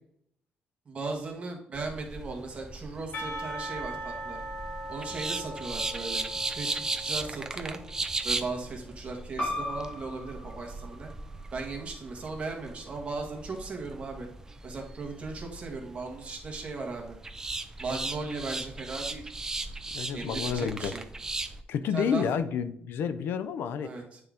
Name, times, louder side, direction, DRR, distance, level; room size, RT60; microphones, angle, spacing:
voice 1, 0.8-4.4 4.9-6.2 6.5-7.8 8.2-11.1 11.5-14.3 14.6-17.2 17.8-19.2 20.1-21.0 21.9-22.2 23.8-24.2, right 3 dB, 35° right, 1 dB, 1.5 m, -37 dB
sound 1, 1.7-21.6, right 3 dB, 15° right, 0.4 m, -37 dB
Percussion / Church bell, 3.1-8.1, right 1 dB, 50° left, 2.0 m, -40 dB
sound 2, 9.4-14.5, left 1 dB, 35° left, 1.8 m, -40 dB
voice 2, 19.9-20.9 21.7-23.9, left 7 dB, 90° left, 13 dB, 0.5 m, -30 dB
9.1 x 3.8 x 3.5 m, 0.69 s
cardioid pair, 160°, 4 cm